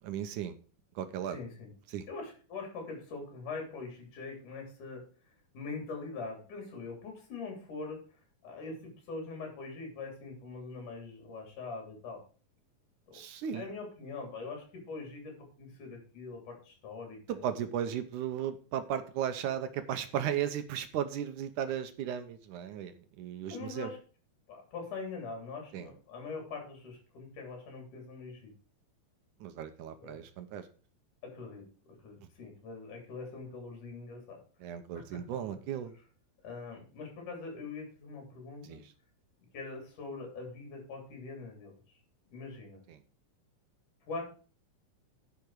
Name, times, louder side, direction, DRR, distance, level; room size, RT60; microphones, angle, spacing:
voice 1, 0.0-0.6 1.0-1.4 1.9-2.0 13.1-13.7 17.3-23.9 25.7-25.9 29.4-30.6 34.6-35.9 38.6-38.8 42.9-43.0, right 9 dB, 70° right, 9 dB, 2.2 m, -36 dB
voice 2, 1.2-1.7 2.1-5.0 5.5-12.2 13.1-13.2 13.5-17.5 23.5-24.0 24.5-28.5 30.0-30.2 31.2-34.4 35.1-35.2 36.4-38.8 39.5-42.0 42.3-42.8 44.1-44.2, left 4 dB, 60° left, 2 dB, 4.7 m, -43 dB
10.5 x 7.0 x 4.8 m, 0.37 s
omnidirectional pair, 4.2 m